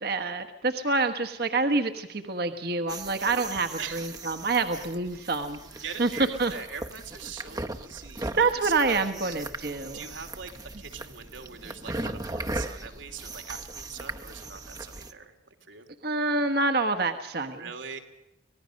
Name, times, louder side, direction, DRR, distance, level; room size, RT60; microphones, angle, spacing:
voice 1, 0.0-6.1 6.4-6.5 8.3-10.1 16.0-17.6, right 3 dB, 55° right, 7 dB, 1.3 m, -27 dB
sound 1, 2.9-15.1, right 2 dB, 20° right, 0.9 m, -38 dB
voice 2, 3.8-4.3 5.6-9.4 9.9-10.5 10.8-15.3 15.7-15.9 17.6-18.0, right 6 dB, 85° right, 4 dB, 3.0 m, -42 dB
25.5 x 18.5 x 6.5 m, 0.91 s
head